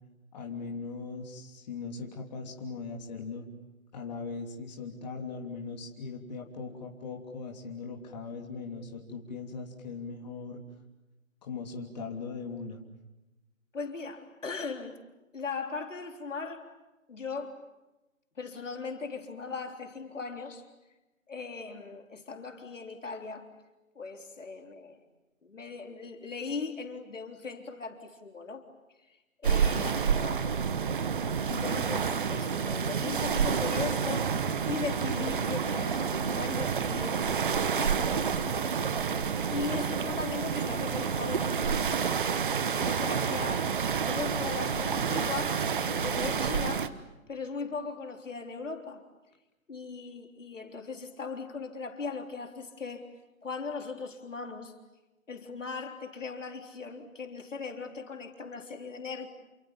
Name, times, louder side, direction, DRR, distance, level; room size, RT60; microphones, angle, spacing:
voice 1, 0.3-3.5 3.9-10.6 11.4-12.8, left 4 dB, 30° left, 1 dB, 3.2 m, -39 dB
voice 2, 13.7-15.0 15.3-16.7 17.1-17.6 18.4-20.6 21.3-23.5 24.0-25.0 25.4-28.6 29.1-30.6 31.5-34.3 34.7-37.4 37.7-39.2 39.5-42.2 42.7-45.6 45.9-47.0 47.3-49.0 49.7-53.1 53.4-54.7 55.3-59.3, left 4 dB, 65° left, 4 dB, 3.7 m, -38 dB
sound 1, 29.4-46.9, right 6 dB, 40° right, 1.2 m, -29 dB
29.0 x 28.0 x 7.3 m, 1.0 s
figure-of-eight pair, 155°, 41 cm